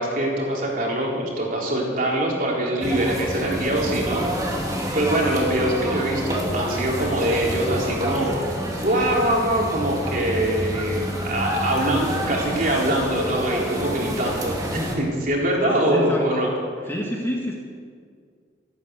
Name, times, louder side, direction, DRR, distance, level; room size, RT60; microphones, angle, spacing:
voice 1, 0.0-4.2 4.7-16.5, right 1 dB, 45° right, -3 dB, 3.7 m, -23 dB
sound 1, 2.8-15.0, equal, 20° right, 2.3 m, -28 dB
voice 2, 15.6-16.3 16.9-17.6, equal, 10° left, -2 dB, 1.8 m, -28 dB
14.0 x 12.5 x 8.2 m, 2.1 s
head